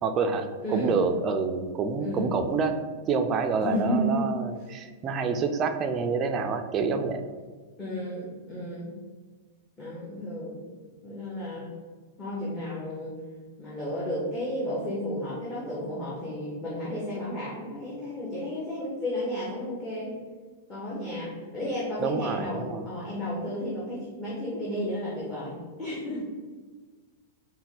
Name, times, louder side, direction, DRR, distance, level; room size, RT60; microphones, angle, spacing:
voice 1, 0.0-2.8 3.1-7.2 22.0-22.9, right 5 dB, 25° right, 6 dB, 0.4 m, -27 dB
voice 2, 2.0-2.3 3.6-4.2 7.8-8.9 9.8-10.6 11.0-11.7 12.2-13.1 13.6-20.1 20.7-26.2, equal, 15° left, -8 dB, 1.1 m, -32 dB
4.3 x 2.2 x 4.1 m, 1.4 s
supercardioid pair, 145°, 0 cm